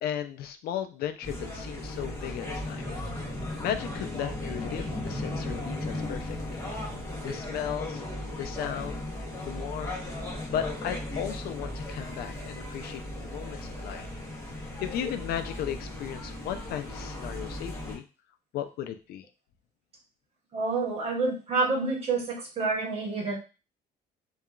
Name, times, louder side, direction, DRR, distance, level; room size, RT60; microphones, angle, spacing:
voice 1, 0.0-2.8 3.6-6.6 7.2-8.0 8.4-9.0 9.5-9.9 10.5-14.0 14.8-18.0 18.5-19.2, left 10 dB, 65° left, 9 dB, 0.4 m, -35 dB
sound 1, 1.2-17.9, left 1 dB, 15° left, 0.9 m, -36 dB
voice 2, 20.5-23.3, right 3 dB, 35° right, -1 dB, 1.1 m, -28 dB
2.8 x 2.3 x 2.4 m, 0.31 s
cardioid pair, 110°, 17 cm